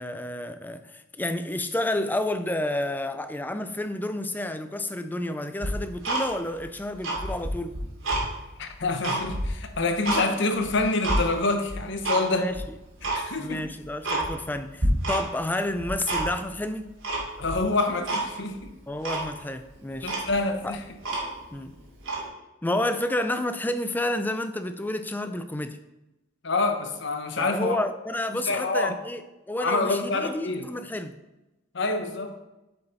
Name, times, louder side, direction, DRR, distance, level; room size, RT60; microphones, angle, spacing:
voice 1, 0.0-7.8 12.3-12.8 13.4-17.0 18.9-20.1 20.6-20.8 21.5-21.7 22.6-25.8 27.4-31.2, left 1 dB, 10° left, 9 dB, 0.4 m, -30 dB
Tick-tock, 5.6-6.6 6.9-8.3 8.7-10.2 10.6-11.2 11.7-12.2 12.5-12.6 13.0-13.2 13.6-13.7 14.0-14.5 14.8-15.5 15.7-16.5 17.0-17.6 18.1-18.3 18.6-18.7 19.0-19.3 19.7-19.8 20.0-21.5 22.0-22.2, right 2 dB, 75° right, 2.5 m, -28 dB
voice 2, 8.6-12.5 13.0-13.6 17.4-18.7 20.0-20.8 26.4-27.8 28.5-29.0 29.6-30.7 31.7-32.3, left 3 dB, 60° left, 6 dB, 0.9 m, -27 dB
8.1 x 5.4 x 4.1 m, 1.0 s
head